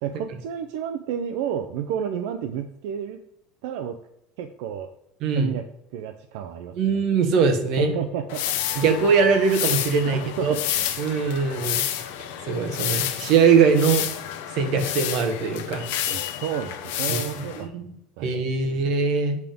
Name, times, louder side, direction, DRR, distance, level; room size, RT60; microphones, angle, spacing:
voice 1, 0.0-3.2 3.6-4.0 4.4-4.9 5.3-5.7 5.9-7.0 7.8-8.4 10.1-10.9 16.1-17.7 18.2-18.6, right 9 dB, 70° right, 7 dB, 0.6 m, -31 dB
voice 2, 5.2-5.5 6.8-7.9 8.8-10.5 11.0-11.8 12.4-14.0 14.5-15.8 17.1-17.2 17.6-17.9 18.2-19.4, right 5 dB, 45° right, 5 dB, 1.2 m, -21 dB
sound 1, 8.3-17.6, left 11 dB, 85° left, 0.8 m, -30 dB
8.2 x 3.6 x 5.2 m, 0.82 s
cardioid pair, 170°, 0 cm